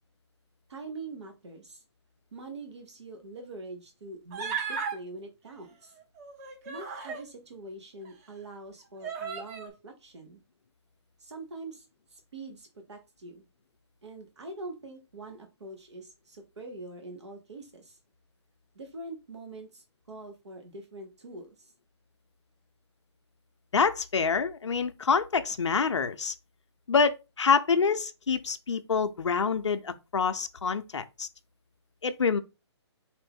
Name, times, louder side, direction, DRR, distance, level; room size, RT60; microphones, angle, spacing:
voice 1, 0.7-1.8 2.3-6.0 6.6-10.4 11.2-13.5 14.0-18.0 18.7-21.7, right 2 dB, 75° right, 1.0 m, -44 dB
Human voice, 4.3-5.0 6.2-7.3 8.0-8.1 9.0-9.7, right 6 dB, 35° right, 0.9 m, -35 dB
voice 2, 23.7-26.3 26.9-31.3 32.0-32.4, left 5 dB, 85° left, 0.5 m, -26 dB
4.3 x 2.6 x 3.5 m
hypercardioid pair, 140°, 15 cm